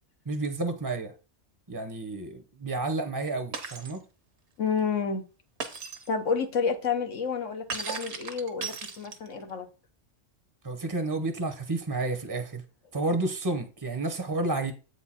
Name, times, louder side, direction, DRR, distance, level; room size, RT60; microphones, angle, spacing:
voice 1, 0.3-1.1 1.7-4.0 10.6-12.6 12.9-14.7, right 2 dB, 25° right, 0.7 m, -30 dB
Shatter, 3.5-4.0 5.6-6.1 7.7-9.4, right 5 dB, 65° right, 1.3 m, -36 dB
voice 2, 4.6-5.2 6.1-9.7, left 5 dB, 80° left, 1.3 m, -29 dB
8.0 x 4.6 x 4.3 m
omnidirectional pair, 1.3 m